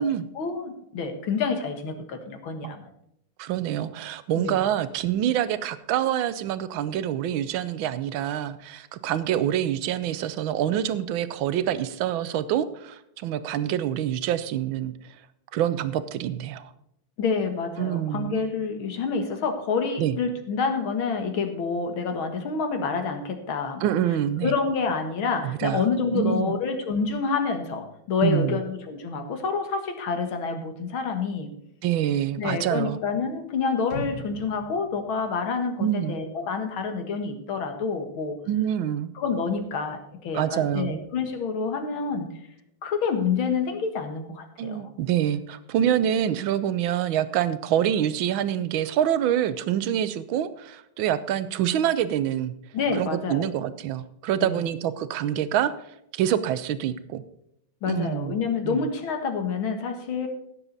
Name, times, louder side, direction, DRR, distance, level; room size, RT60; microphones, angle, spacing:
voice 1, 0.3-2.9 4.3-4.6 17.2-23.9 24.4-31.5 32.4-38.4 39.2-42.3 42.8-44.9 52.7-53.5 54.4-54.6 57.8-60.3, left 5 dB, 85° left, 6 dB, 2.4 m, -28 dB
voice 2, 3.4-14.9 15.5-16.7 17.8-18.3 20.0-20.2 23.8-24.5 25.4-25.9 26.1-26.6 28.2-28.6 31.8-33.0 35.8-36.2 38.5-39.1 40.3-41.0 44.6-52.5 53.0-55.7 56.1-57.2 57.9-58.4 58.6-58.8, right 10 dB, 80° right, 14 dB, 1.5 m, -26 dB
sound 1, 33.9-36.1 36.4-36.5, left 4 dB, 50° left, 1.6 m, -40 dB
17.0 x 7.4 x 4.0 m, 0.79 s
omnidirectional pair, 2.2 m